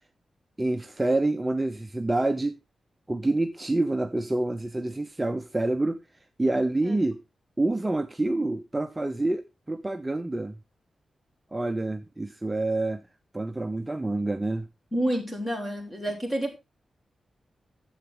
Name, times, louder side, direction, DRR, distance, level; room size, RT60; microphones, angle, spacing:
voice 1, 0.6-2.6 3.1-6.0 6.4-7.2 7.6-10.6 11.5-13.0 13.3-14.7, right 2 dB, 15° right, 0.6 m, -27 dB
voice 2, 14.9-16.5, right 1 dB, 15° left, 3.1 m, -29 dB
10.5 x 7.8 x 3.7 m
wide cardioid pair, 125°, 0 cm